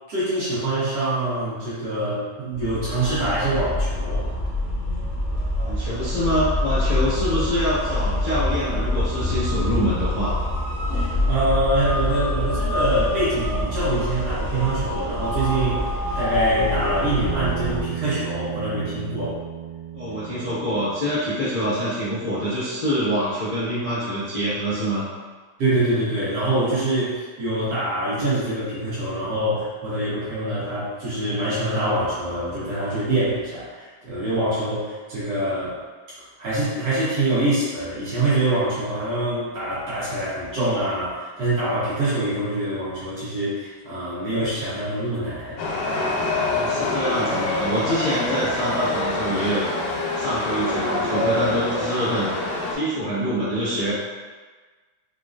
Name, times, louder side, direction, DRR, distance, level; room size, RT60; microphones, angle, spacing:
voice 1, 0.1-4.2 10.9-19.3 25.6-35.7 36.4-45.6, right 1 dB, 60° right, -11 dB, 2.0 m, -25 dB
sound 1, 2.5-17.8, left 1 dB, 60° left, 0.5 m, -25 dB
voice 2, 5.6-10.4 19.9-25.1 46.5-49.6 50.1-52.3 52.7-53.9, equal, 35° left, -13 dB, 0.8 m, -25 dB
Bass guitar, 17.2-21.6, right 9 dB, 85° right, 2.2 m, -33 dB
Chatter / Subway metro underground, 45.6-52.8, left 2 dB, 90° left, 2.1 m, -25 dB
5.1 x 2.3 x 2.5 m, 1.4 s
omnidirectional pair, 3.4 m